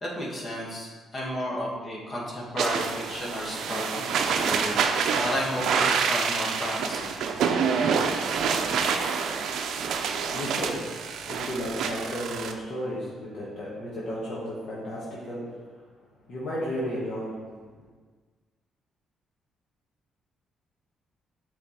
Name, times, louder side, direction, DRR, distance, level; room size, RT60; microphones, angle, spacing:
voice 1, 0.0-4.8 5.2-7.1, equal, 40° left, -3 dB, 1.6 m, -32 dB
sound 1, 2.6-12.5, right 6 dB, 75° right, 0.5 m, -27 dB
voice 2, 9.9-17.8, equal, 60° left, -7 dB, 1.3 m, -34 dB
6.9 x 3.4 x 4.2 m, 1.4 s
cardioid pair, 90°, 0 cm